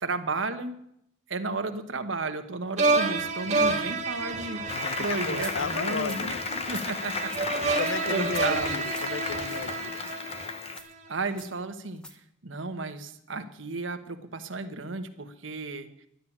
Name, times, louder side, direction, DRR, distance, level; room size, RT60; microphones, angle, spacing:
voice 1, 0.0-0.7 1.3-8.8 11.1-15.9, right 3 dB, 85° right, 9 dB, 1.2 m, -34 dB
sound 1, 2.8-11.0, right 3 dB, 35° right, 1.8 m, -29 dB
voice 2, 4.7-6.4 7.6-10.0, left 5 dB, 75° left, 16 dB, 0.5 m, -35 dB
Applause, 4.7-10.8, left 5 dB, 30° left, 0.8 m, -34 dB
sound 2, 5.4-5.6 6.0-6.2 6.7-6.9 7.3-7.5 7.9-8.0 8.3-8.5 8.8-9.1 9.5-9.7 10.0-10.2 10.7-10.9 11.4-11.5 12.0-12.2, equal, 5° left, 1.0 m, -43 dB
11.5 x 10.5 x 7.3 m, 0.74 s
head